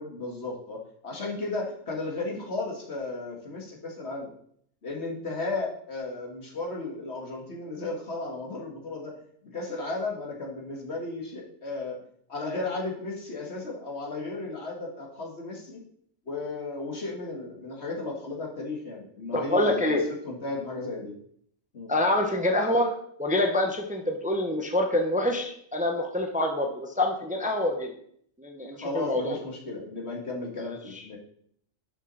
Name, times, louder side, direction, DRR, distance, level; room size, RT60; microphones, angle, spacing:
voice 1, 0.0-4.3 4.8-9.1 9.4-12.0 12.3-15.8 16.3-21.1 21.7-21.9 28.8-31.2, left 3 dB, 55° left, 0 dB, 2.0 m, -34 dB
voice 2, 19.3-20.0 21.9-22.9 23.2-27.9 28.4-29.4, left 1 dB, 5° right, 3 dB, 0.9 m, -26 dB
11.0 x 6.3 x 4.1 m, 0.65 s
omnidirectional pair, 1.3 m